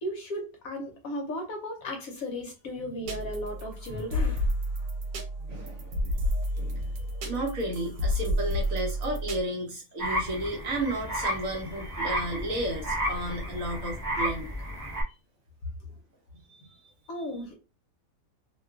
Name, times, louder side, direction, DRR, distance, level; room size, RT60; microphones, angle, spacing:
voice 1, 0.0-4.5 17.1-17.5, left 1 dB, 65° left, 1 dB, 1.0 m, -35 dB
sound 1, 3.1-9.4, equal, 85° right, 1.3 m, -30 dB
voice 2, 5.4-6.1 6.6-14.5 16.5-16.9, right 1 dB, 60° right, 0 dB, 1.0 m, -33 dB
sound 2, 10.0-15.0, equal, 35° right, 0.8 m, -32 dB
2.9 x 2.2 x 2.3 m, 0.31 s
omnidirectional pair, 1.8 m